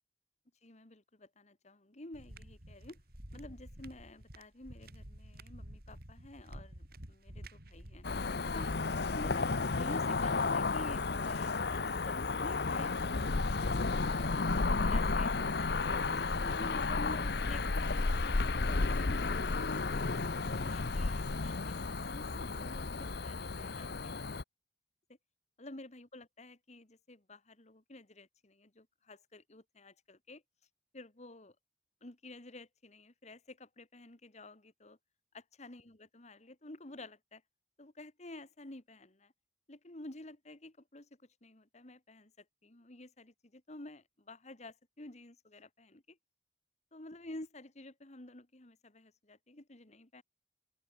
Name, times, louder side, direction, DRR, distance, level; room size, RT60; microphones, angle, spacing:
voice 1, 0.6-3.0 3.3-8.0 8.5-8.7 9.1-15.7 16.1-20.1 20.5-24.3 25.6-30.4 30.9-31.6 32.0-35.0 35.3-37.4 37.8-39.3 39.7-41.1 41.4-42.3 42.6-46.2 46.9-50.2, left 2 dB, 40° left, 2.1 m, -50 dB
sound 1, 2.1-8.3, right 1 dB, 60° right, 5.2 m, -50 dB
Cricket / Motor vehicle (road), 8.0-24.4, left 3 dB, 65° left, 0.9 m, -33 dB
open air
head